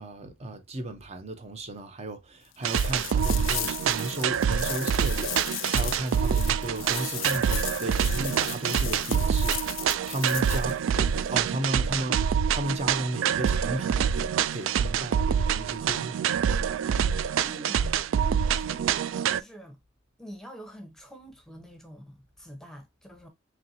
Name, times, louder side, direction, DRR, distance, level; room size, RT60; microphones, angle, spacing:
voice 1, 0.0-16.3, right 1 dB, 35° right, 0.7 m, -35 dB
sound 1, 2.6-10.7, left 16 dB, 80° left, 0.4 m, -36 dB
sound 2, 2.6-19.4, right 8 dB, 85° right, 0.3 m, -26 dB
voice 2, 17.4-19.8 20.2-23.3, equal, 5° left, 0.8 m, -46 dB
4.4 x 3.1 x 2.7 m
head